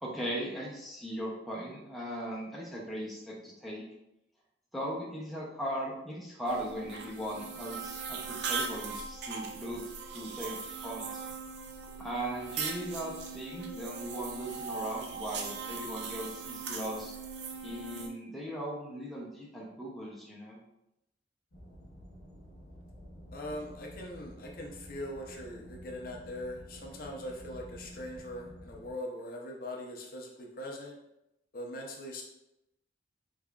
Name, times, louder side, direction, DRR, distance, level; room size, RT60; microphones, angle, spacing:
voice 1, 0.0-3.8 4.7-9.8 10.1-10.6 10.8-11.2 12.0-17.2 17.6-20.6, equal, ahead, -5 dB, 0.6 m, -38 dB
brushing teeth, 6.5-18.1, right 5 dB, 70° right, 0.5 m, -39 dB
sound 1, 21.5-28.9, equal, 75° left, 0.9 m, -50 dB
voice 2, 23.3-31.0 31.5-32.2, left 1 dB, 55° left, 0 dB, 0.6 m, -41 dB
3.6 x 3.3 x 2.3 m, 0.86 s
head